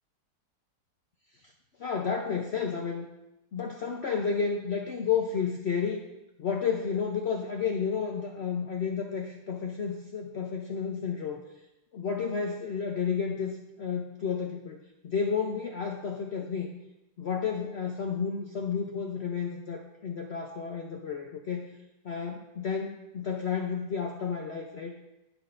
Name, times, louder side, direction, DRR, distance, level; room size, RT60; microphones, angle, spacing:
voice 1, 1.8-3.1 3.5-6.0 6.4-11.4 11.9-16.7 17.2-21.7 22.0-24.9, left 6 dB, 55° left, 2 dB, 0.7 m, -31 dB
17.0 x 6.1 x 2.6 m, 0.94 s
omnidirectional pair, 1.8 m